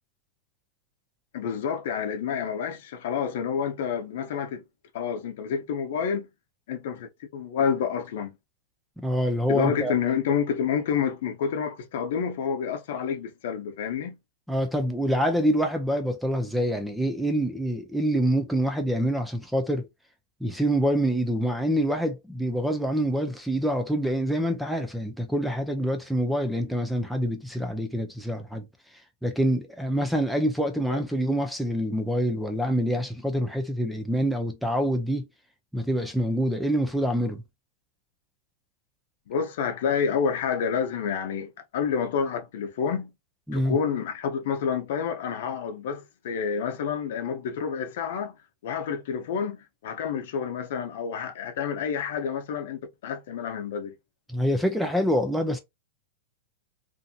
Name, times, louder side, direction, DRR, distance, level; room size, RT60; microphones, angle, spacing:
voice 1, 1.3-4.6 4.9-6.3 6.7-8.4 9.5-14.2 30.9-31.0 39.3-43.1 43.5-48.4 48.6-53.9, left 7 dB, 65° left, 0.7 m, -29 dB
voice 2, 9.0-10.0 14.5-19.9 20.4-28.7 29.2-35.3 35.7-37.4 43.5-43.8 54.3-55.6, equal, ahead, 0.4 m, -26 dB
2.6 x 2.6 x 2.3 m
supercardioid pair, 150°, 0 cm